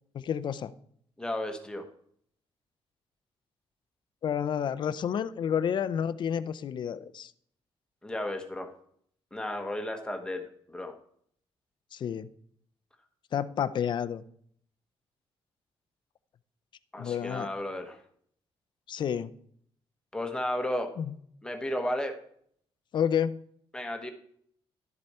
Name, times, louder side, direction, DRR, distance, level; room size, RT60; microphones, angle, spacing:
voice 1, 0.1-0.7 4.2-7.3 11.9-12.3 13.3-14.2 17.0-17.5 18.9-19.3 21.0-21.1 22.9-23.4, left 8 dB, 50° left, 13 dB, 0.5 m, -30 dB
voice 2, 1.2-1.9 8.0-8.7 9.3-10.9 16.9-18.0 20.1-20.9 21.4-22.2 23.7-24.1, left 1 dB, 10° left, 5 dB, 1.1 m, -33 dB
12.0 x 7.7 x 4.3 m, 0.65 s
cardioid pair, 155°, 10 cm